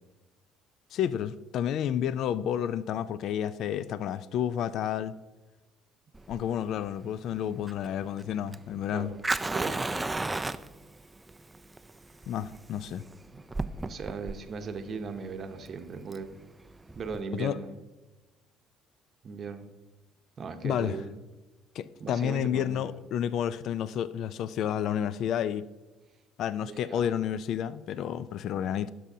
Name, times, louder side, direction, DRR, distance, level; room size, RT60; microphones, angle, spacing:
voice 1, 0.9-5.1 6.3-9.1 12.3-13.0 17.3-17.6 20.6-21.0 21.8-25.6 26.4-28.9, left 9 dB, 65° left, 0.3 m, -30 dB
Fire, 6.1-17.2, right 2 dB, 15° right, 0.3 m, -35 dB
voice 2, 9.5-9.9 13.3-13.4 13.8-16.3 16.9-17.8 19.2-19.7 20.4-21.2 22.0-23.0 26.7-27.1, right 5 dB, 45° right, 0.8 m, -38 dB
12.0 x 6.2 x 2.7 m
supercardioid pair, 90°, 0 cm